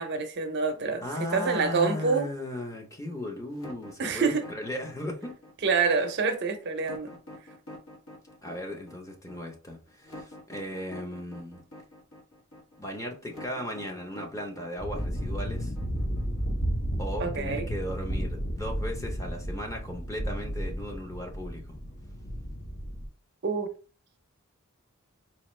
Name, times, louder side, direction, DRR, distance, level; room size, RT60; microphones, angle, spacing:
voice 1, 0.0-2.3 4.0-4.5 5.6-7.1 17.2-17.7 23.4-23.7, right 4 dB, 50° right, 0.5 m, -27 dB
voice 2, 1.0-5.3 8.4-11.6 12.8-15.7 17.0-21.8, left 1 dB, 15° left, 0.7 m, -37 dB
sound 1, 3.5-16.4, left 1 dB, 75° left, 1.3 m, -46 dB
sound 2, 14.8-23.1, equal, 50° left, 0.9 m, -33 dB
4.2 x 2.4 x 3.1 m
head